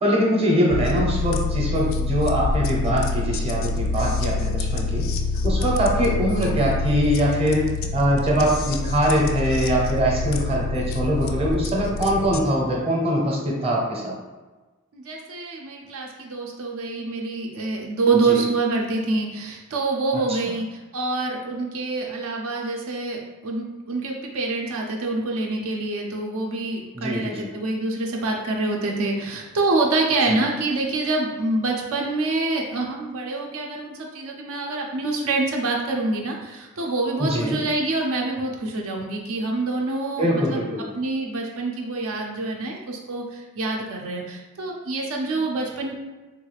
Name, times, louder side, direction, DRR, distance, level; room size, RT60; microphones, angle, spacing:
voice 1, 0.0-5.0 5.4-14.1 18.3-18.4 20.3-20.4 26.9-27.5 30.3-30.4 37.2-37.6 40.2-40.8, equal, 25° right, -3 dB, 0.6 m, -22 dB
sound 1, 0.7-12.4, left 3 dB, 65° left, 0.3 m, -26 dB
voice 2, 14.9-40.7 40.9-45.9, right 3 dB, 75° right, 0 dB, 0.5 m, -26 dB
3.6 x 2.3 x 3.2 m, 1.2 s
head